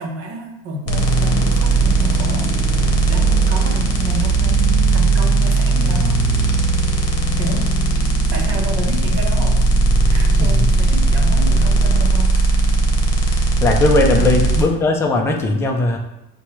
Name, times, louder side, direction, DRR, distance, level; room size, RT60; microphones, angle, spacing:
voice 1, 0.0-6.2 7.4-7.7 8.3-9.6 10.1-12.7 13.2-13.5 14.1-14.3, right 1 dB, 50° right, 0 dB, 0.8 m, -30 dB
sound 1, 0.9-14.6, right 3 dB, 50° left, 0.8 m, -17 dB
voice 2, 10.3-10.7 13.6-16.0, left 2 dB, 10° left, 1 dB, 0.4 m, -18 dB
4.5 x 2.2 x 3.0 m, 0.88 s
supercardioid pair, 115°, 31 cm